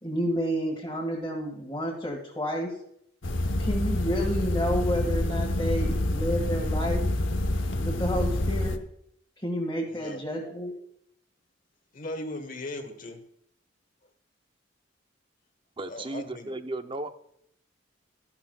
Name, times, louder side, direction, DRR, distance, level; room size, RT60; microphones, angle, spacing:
voice 1, 0.0-2.7 3.6-7.0 7.8-8.8 9.4-10.7, equal, 20° left, -4 dB, 1.8 m, -30 dB
sound 1, 3.2-8.8, left 1 dB, 75° left, 0.9 m, -27 dB
voice 2, 9.9-10.2 11.9-13.2 15.9-16.5, left 1 dB, 45° left, 6 dB, 1.3 m, -38 dB
voice 3, 15.8-17.1, right 2 dB, 25° right, 9 dB, 0.6 m, -35 dB
13.5 x 12.0 x 2.3 m, 0.72 s
head